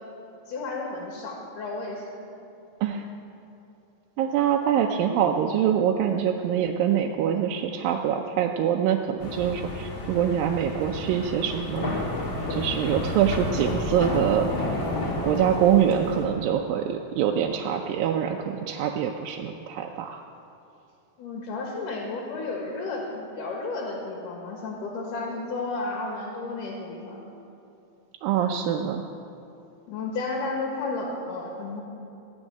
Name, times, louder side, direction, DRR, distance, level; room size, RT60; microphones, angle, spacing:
voice 1, 0.5-2.3 21.2-27.2 29.9-31.8, left 3 dB, 70° left, -1 dB, 3.1 m, -32 dB
voice 2, 4.2-11.9 12.5-14.5 15.2-20.2 28.2-29.1, right 9 dB, 85° right, 1 dB, 2.4 m, -24 dB
sound 1, 9.2-16.2, left 2 dB, 40° left, 2.4 m, -31 dB
18.0 x 6.4 x 8.9 m, 2.8 s
omnidirectional pair, 4.0 m